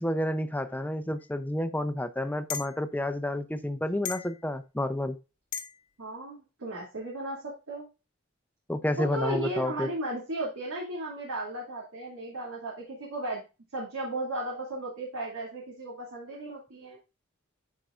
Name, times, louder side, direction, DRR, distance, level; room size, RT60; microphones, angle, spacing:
voice 1, 0.0-5.2 8.7-9.9, left 1 dB, 10° left, 10 dB, 0.6 m, -30 dB
sound 1, 1.2-1.3 2.5-2.7 4.0-4.4 5.5-5.8, left 8 dB, 40° left, 1.2 m, -35 dB
voice 2, 6.0-7.8 9.0-13.4 13.7-17.0, right 2 dB, 90° right, -5 dB, 2.6 m, -35 dB
11.5 x 4.7 x 2.5 m, 0.30 s
head